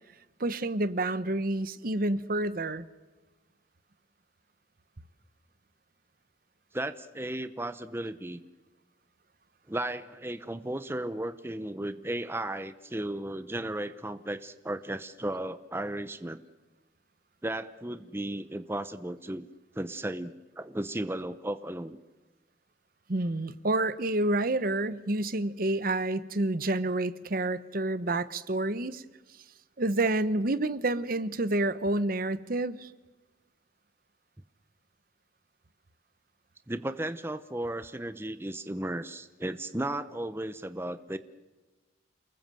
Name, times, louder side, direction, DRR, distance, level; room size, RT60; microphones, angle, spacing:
voice 1, 0.4-2.9 23.1-29.0 29.8-32.9, right 2 dB, 50° right, 14 dB, 0.9 m, -29 dB
voice 2, 6.7-8.4 9.7-16.4 17.4-19.5 19.8-22.0 36.7-41.2, right 1 dB, 10° right, 11 dB, 0.8 m, -35 dB
29.0 x 20.5 x 7.6 m, 1.2 s
head